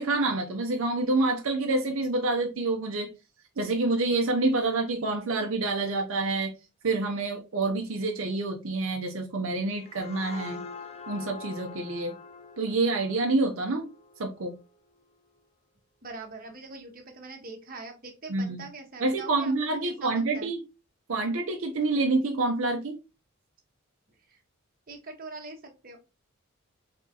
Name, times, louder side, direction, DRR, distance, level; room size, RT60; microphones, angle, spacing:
voice 1, 0.0-3.1 3.6-6.5 6.8-10.6 11.1-12.1 12.6-13.9 14.2-14.5 18.3-18.6 19.0-20.6 21.1-23.0, right 2 dB, 70° right, 2 dB, 0.6 m, -27 dB
sound 1, 9.5-15.0, left 4 dB, 30° left, 0.4 m, -45 dB
voice 2, 16.0-19.5 19.8-20.5 24.3-24.4 24.9-26.0, right 3 dB, 40° right, 2 dB, 1.0 m, -43 dB
3.8 x 3.5 x 2.7 m, 0.29 s
head